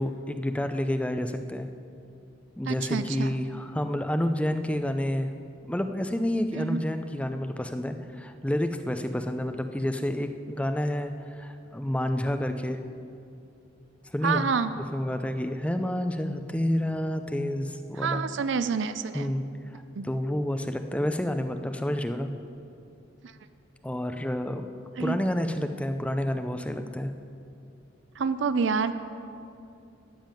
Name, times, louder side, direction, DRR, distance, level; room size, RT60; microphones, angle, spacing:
voice 1, 0.0-1.7 2.6-5.3 5.7-12.8 14.1-14.5 14.8-18.2 19.1-19.4 19.7-22.3 23.8-24.7 25.0-27.1, left 1 dB, 5° left, 7 dB, 0.4 m, -29 dB
voice 2, 2.7-3.3 6.6-6.8 14.2-14.7 18.0-19.3 19.9-20.0 25.0-25.2 28.2-28.9, right 5 dB, 70° right, 12 dB, 0.5 m, -27 dB
13.0 x 5.4 x 9.0 m, 2.6 s
head